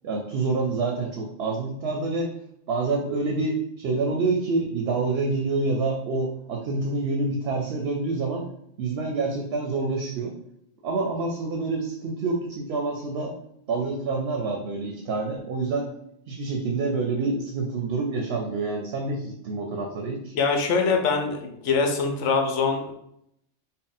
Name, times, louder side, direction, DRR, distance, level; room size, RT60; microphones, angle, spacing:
voice 1, 0.0-2.3 2.7-8.5 8.8-10.3 10.8-13.3 13.7-15.9 16.3-20.3, right 3 dB, 65° right, 2 dB, 0.8 m, -27 dB
voice 2, 20.3-22.9, left 4 dB, 80° left, 4 dB, 1.0 m, -23 dB
3.8 x 2.1 x 3.9 m, 0.75 s
omnidirectional pair, 1.2 m